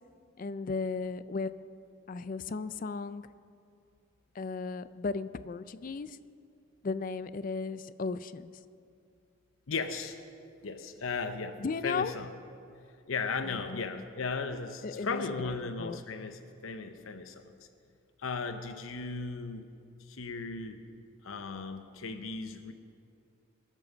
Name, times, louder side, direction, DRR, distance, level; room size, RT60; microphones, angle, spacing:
voice 1, 0.4-1.5 2.1-3.2 4.3-6.2 6.8-8.5 11.6-12.1 13.4-14.0 14.8-16.0, left 4 dB, 40° left, 14 dB, 0.4 m, -35 dB
voice 2, 9.7-10.2 10.6-12.3 13.1-17.6 18.2-19.7 20.1-20.8 21.2-22.7, left 4 dB, 75° left, 8 dB, 0.7 m, -36 dB
21.5 x 7.6 x 6.2 m, 2.4 s
head